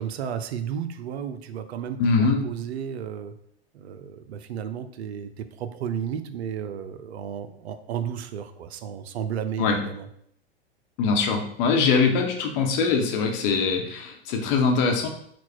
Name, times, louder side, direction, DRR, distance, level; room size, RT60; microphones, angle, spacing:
voice 1, 0.0-3.3 3.7-10.1, right 8 dB, 75° right, 11 dB, 0.5 m, -33 dB
voice 2, 2.0-2.4 9.6-9.8 11.0-15.1, left 4 dB, 50° left, 3 dB, 1.0 m, -22 dB
4.3 x 2.3 x 4.4 m, 0.68 s
hypercardioid pair, 100°, 32 cm